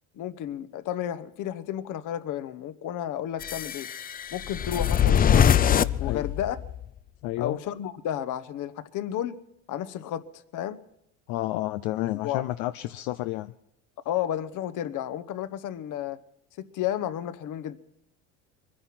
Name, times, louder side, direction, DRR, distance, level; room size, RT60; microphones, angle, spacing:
voice 1, 0.1-3.9 4.3-5.6 6.0-6.6 7.4-9.4 9.7-10.3 10.5-10.8 12.2-12.4 14.0-16.2 16.6-17.8, left 11 dB, 55° left, 13 dB, 1.2 m, -32 dB
sound 1, 3.4-6.9, left 9 dB, 25° left, 0.5 m, -23 dB
voice 2, 7.2-7.6 11.3-13.5, left 16 dB, 70° left, 11 dB, 0.7 m, -30 dB
22.5 x 10.0 x 6.0 m, 0.79 s
supercardioid pair, 90°, 38 cm